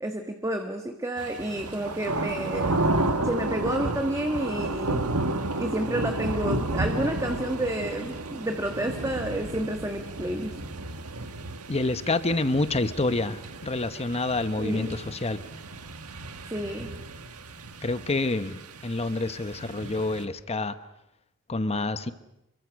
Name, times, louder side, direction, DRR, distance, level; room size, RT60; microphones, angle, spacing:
voice 1, 0.0-2.8 3.2-5.1 5.6-10.5 14.6-15.0 16.5-16.9, right 1 dB, 15° right, 4 dB, 1.4 m, -30 dB
sound 1, 1.2-20.3, right 2 dB, 85° right, 1.8 m, -32 dB
voice 2, 11.7-15.4 17.8-20.7 21.5-22.1, left 2 dB, 30° left, 11 dB, 1.0 m, -28 dB
27.0 x 23.0 x 6.4 m, 0.90 s
head